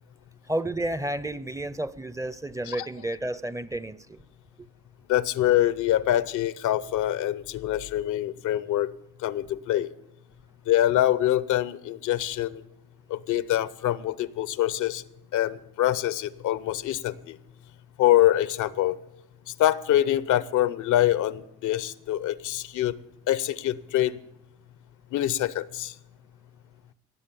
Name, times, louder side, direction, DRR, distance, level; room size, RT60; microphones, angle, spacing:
voice 1, 0.5-4.2 4.6-4.7, right 1 dB, 10° right, 16 dB, 0.5 m, -31 dB
voice 2, 5.1-8.9 9.2-9.9 10.7-12.6 13.1-15.0 15.3-17.4 18.0-19.0 19.6-23.0 23.3-24.2 25.1-25.9, left 13 dB, 80° left, 17 dB, 0.6 m, -25 dB
17.5 x 7.5 x 6.9 m, 0.88 s
cardioid pair, 90°, 30 cm